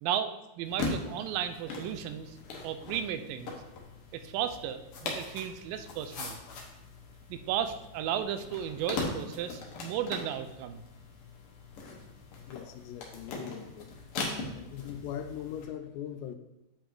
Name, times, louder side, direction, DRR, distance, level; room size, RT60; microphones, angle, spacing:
voice 1, 0.0-2.4 2.6-3.5 4.1-6.4 7.3-10.8, right 9 dB, 85° right, 9 dB, 2.3 m, -34 dB
sound 1, 0.6-15.6, left 3 dB, 60° left, 1.5 m, -41 dB
voice 2, 12.5-13.9 14.5-16.4, left 9 dB, 85° left, 8 dB, 2.3 m, -40 dB
8.4 x 5.0 x 3.8 m, 0.90 s
omnidirectional pair, 4.0 m